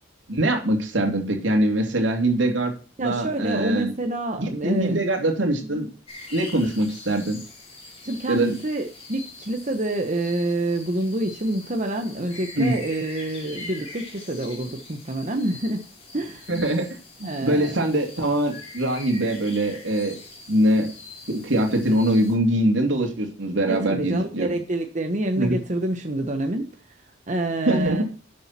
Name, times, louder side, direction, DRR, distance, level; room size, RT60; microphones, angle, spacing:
voice 1, 0.3-2.7 3.0-3.9 4.4-5.9 6.3-7.4 8.3-8.6 12.6-12.8 16.5-16.9 17.2-20.2 20.5-20.9 21.3-24.5 25.4-25.6 27.7-28.0, right 1 dB, 75° right, 3 dB, 3.0 m, -23 dB
voice 2, 3.0-5.0 5.7-5.8 8.0-15.9 16.1-16.5 17.2-17.8 23.7-27.0 27.3-28.0, right 1 dB, 40° right, 4 dB, 1.1 m, -27 dB
sound 1, 6.1-22.3, left 2 dB, 30° left, 4.1 m, -43 dB
12.0 x 7.6 x 4.3 m, 0.36 s
head